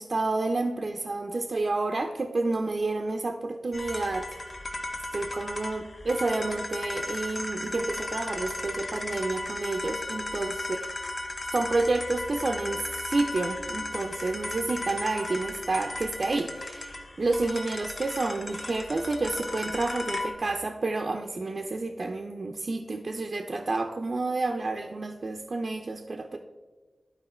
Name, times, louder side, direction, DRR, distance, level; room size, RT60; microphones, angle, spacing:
voice 1, 0.0-4.6 5.1-10.6 11.5-26.4, right 3 dB, 55° right, 4 dB, 0.5 m, -30 dB
sound 1, 3.7-20.3, left 2 dB, 50° left, 1.0 m, -36 dB
11.5 x 4.5 x 4.3 m, 1.3 s
cardioid pair, 60°, 0 cm